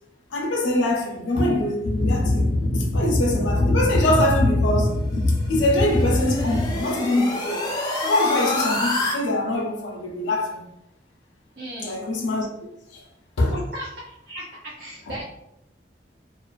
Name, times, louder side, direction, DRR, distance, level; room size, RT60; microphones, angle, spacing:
voice 1, 0.3-7.7 8.0-10.6 11.8-12.5 12.9-13.0 13.4-13.6 15.1-15.2, left 1 dB, 90° left, 0.5 m, -22 dB
sound 1, 5.2-9.1, left 2 dB, 20° left, 0.4 m, -28 dB
voice 2, 11.6-12.0 13.5-15.2, equal, 50° right, 0.4 m, -36 dB
2.4 x 2.4 x 2.3 m
head